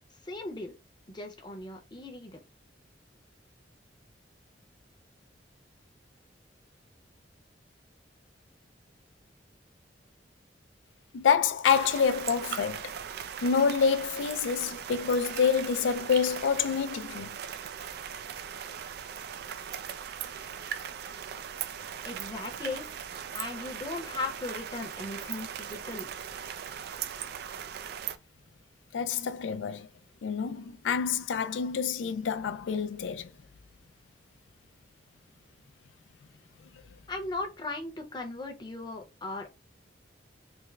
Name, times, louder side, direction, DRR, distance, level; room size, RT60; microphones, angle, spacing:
voice 1, 0.2-0.7 1.1-2.4 22.0-22.9 23.3-26.1 37.1-39.5, left 2 dB, 25° left, 0.8 m, -37 dB
voice 2, 11.1-13.0 13.4-17.4 28.9-29.9 30.2-33.3, left 6 dB, 90° left, 0.4 m, -27 dB
sound 1, 11.6-28.2, right 8 dB, 60° right, 0.4 m, -39 dB
3.5 x 2.1 x 3.2 m
head